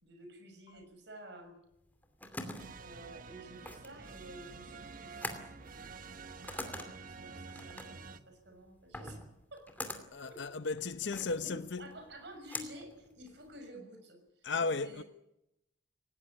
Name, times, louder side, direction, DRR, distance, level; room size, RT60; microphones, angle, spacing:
voice 1, 0.0-1.6 2.8-6.4 7.0-9.2 9.5-9.6 10.2-10.4 11.0-15.0, right 1 dB, 60° right, 6.2 m, -51 dB
sound 1, 1.8-13.7, left 2 dB, 10° left, 2.6 m, -46 dB
sound 2, 2.6-8.2, right 4 dB, 45° right, 1.1 m, -49 dB
voice 2, 10.1-11.9 14.4-15.0, left 4 dB, 70° left, 0.8 m, -35 dB
18.5 x 18.5 x 9.8 m
head